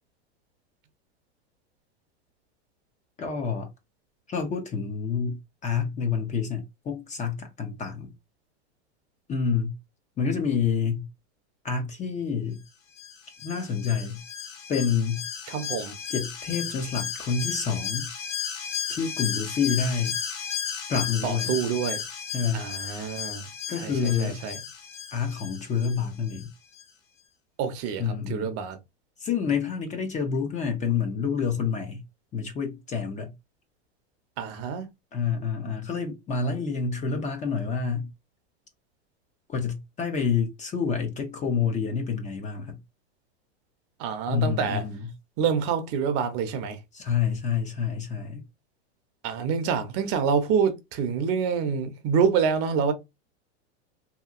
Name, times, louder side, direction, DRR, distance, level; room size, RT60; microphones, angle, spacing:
voice 1, 3.2-3.7 4.3-8.1 9.3-9.7 10.2-11.1 11.6-12.6 13.4-14.2 14.7-15.2 16.1-18.1 18.9-20.2 20.9-21.6 22.3-22.7 23.7-24.4 25.1-26.5 28.0-28.5 29.2-32.0 32.3-33.3 35.1-38.1 39.5-42.8 44.3-45.1 46.9-48.4, left 6 dB, 20° left, 0.5 m, -28 dB
Alarm, 13.0-26.5 26.8-26.9, left 8 dB, 65° left, 1.0 m, -34 dB
voice 2, 15.5-15.9 21.2-22.0 22.5-23.4 23.8-24.6 27.6-28.8 34.4-34.9 44.0-44.8 45.4-46.8 49.2-52.9, right 6 dB, 45° right, 0.7 m, -27 dB
2.8 x 2.7 x 2.4 m
supercardioid pair, 120°, 34 cm